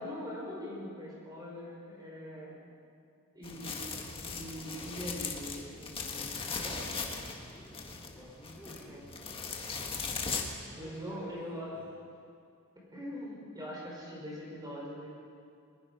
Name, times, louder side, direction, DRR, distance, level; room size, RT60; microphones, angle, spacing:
voice 1, 0.0-2.6 3.3-3.8 4.2-7.0 8.9-9.0 10.2-11.8 12.8-15.1, equal, 20° right, -4 dB, 5.2 m, -42 dB
sound 1, 3.4-10.4, left 4 dB, 25° left, 1.7 m, -39 dB
voice 2, 7.3-9.0 10.7-11.9, equal, 5° left, -7 dB, 4.7 m, -53 dB
22.5 x 21.0 x 5.5 m, 2.4 s
head